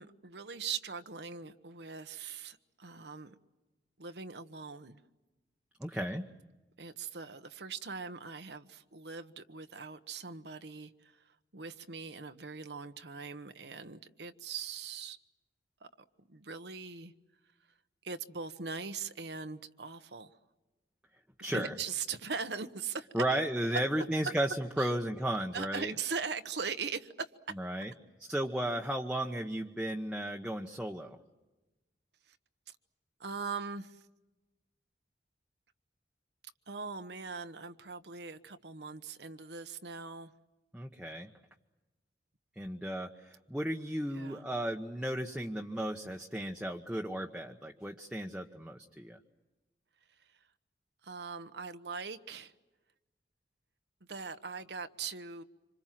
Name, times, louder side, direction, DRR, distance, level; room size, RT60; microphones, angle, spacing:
voice 1, 0.0-3.3 4.0-5.0 6.8-15.2 15.8-15.9 16.3-17.1 18.0-20.4 21.5-23.1 24.8-24.9 25.5-27.3 27.8-27.9 32.3-32.4 32.7-32.8 33.2-34.0 36.7-40.3 44.1-44.4 50.3-50.4 51.0-52.5 54.1-55.4, right 5 dB, 70° right, 1.1 m, -41 dB
voice 2, 5.8-6.3 21.4-21.7 23.1-25.9 27.6-27.9 28.3-31.2 40.7-41.3 42.6-49.2, right 1 dB, 5° right, 1.0 m, -34 dB
26.5 x 26.5 x 7.6 m
head